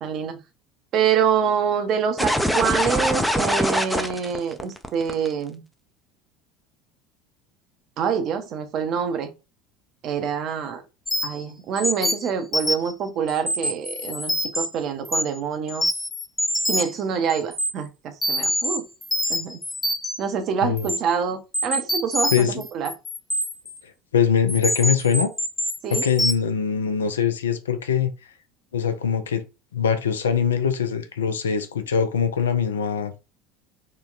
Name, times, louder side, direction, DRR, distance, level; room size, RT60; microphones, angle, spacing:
voice 1, 0.0-0.4 0.9-5.6 8.0-9.3 10.0-10.8 11.2-16.0 16.7-18.9 19.3-19.6 20.2-22.9 25.8-26.0, right 7 dB, 45° right, 0.6 m, -26 dB
sound 1, 2.2-5.3, equal, 5° left, 0.4 m, -23 dB
sound 2, 11.1-11.4 11.8-12.9 13.3-14.7 15.1-15.4 15.7-17.0 17.3-17.7 18.2-20.3 20.8-21.0 21.5-23.8 24.5-26.3, equal, 20° left, 0.8 m, -25 dB
voice 2, 22.3-22.6 24.1-25.3 25.9-28.1 28.7-29.4 29.7-33.1, left 7 dB, 75° left, 0.4 m, -22 dB
3.8 x 2.1 x 2.4 m
figure-of-eight pair, 70°, 0 cm